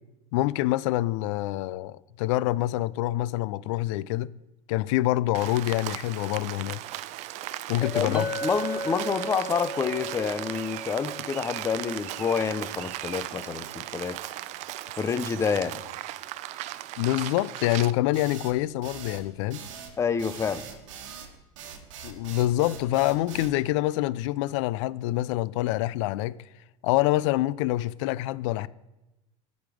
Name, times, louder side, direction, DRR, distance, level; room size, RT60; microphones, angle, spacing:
voice 1, 0.3-4.3 4.7-6.8 7.7-8.3 17.0-19.6 22.0-26.4 26.8-28.7, left 16 dB, 70° left, 0.4 m, -26 dB
Rain, 5.3-17.9, right 15 dB, 45° right, 0.4 m, -37 dB
voice 2, 7.8-14.2 15.0-15.8 20.0-20.6, left 6 dB, 20° left, 0.5 m, -28 dB
Chink clink, 8.1-12.6, right 1 dB, 10° right, 1.9 m, -36 dB
sound 1, 18.1-23.6, right 7 dB, 90° right, 1.4 m, -42 dB
10.5 x 5.2 x 4.9 m
supercardioid pair, 130°, 16 cm